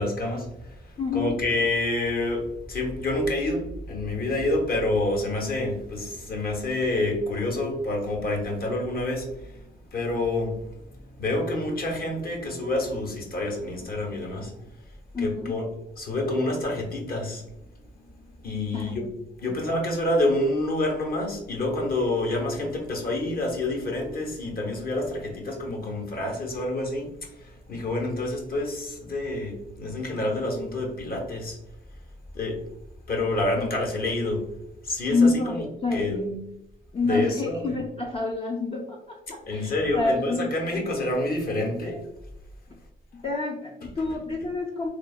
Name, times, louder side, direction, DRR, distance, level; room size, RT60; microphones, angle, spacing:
voice 1, 0.0-14.6 15.2-15.7 16.0-17.5 18.0-19.1 19.4-31.6 32.3-32.6 33.1-34.5 34.8-35.6 35.9-36.2 37.0-37.8 39.5-42.1 44.0-44.2, left 2 dB, 50° left, 2 dB, 0.9 m, -28 dB
voice 2, 1.0-1.3 15.1-15.6 18.7-18.9 35.1-36.4 36.9-40.8 43.2-44.9, left 3 dB, 30° left, 0 dB, 0.4 m, -28 dB
3.1 x 2.0 x 2.2 m, 0.84 s
cardioid pair, 90°, 20 cm